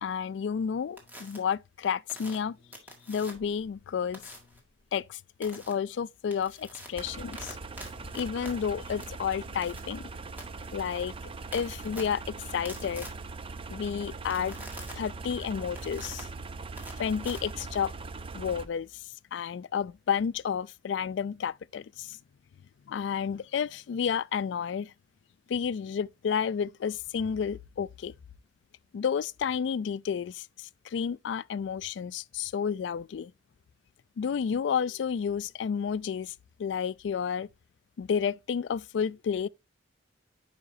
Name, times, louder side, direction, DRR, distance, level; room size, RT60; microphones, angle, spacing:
voice 1, 0.0-2.6 3.1-4.3 4.9-7.6 8.1-10.1 10.7-11.1 11.5-13.1 13.7-14.6 15.0-16.3 17.0-17.9 18.3-22.2 22.9-24.9 25.5-28.1 28.9-33.3 34.2-36.3 36.6-37.5 38.0-39.5, left 7 dB, 70° left, 0.3 m, -31 dB
sound 1, 1.0-1.4 2.1-3.6 4.1-4.6 5.4-5.7 6.1-18.0, equal, 10° right, 1.7 m, -47 dB
sound 2, 6.9-18.7, right 3 dB, 30° right, 0.4 m, -41 dB
9.6 x 4.9 x 2.6 m
head